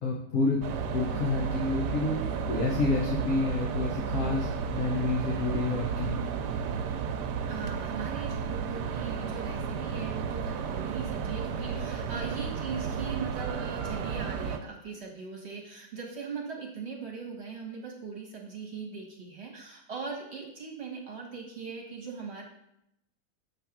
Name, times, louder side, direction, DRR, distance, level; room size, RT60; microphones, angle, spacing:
voice 1, 0.0-0.6 0.9-2.2 2.5-6.2, left 3 dB, 60° left, -2 dB, 1.1 m, -29 dB
sound 1, 0.6-14.6, right 6 dB, 85° right, 1.2 m, -33 dB
voice 2, 7.5-22.4, right 5 dB, 45° right, -1 dB, 1.3 m, -40 dB
6.9 x 3.3 x 5.9 m, 0.82 s
omnidirectional pair, 1.8 m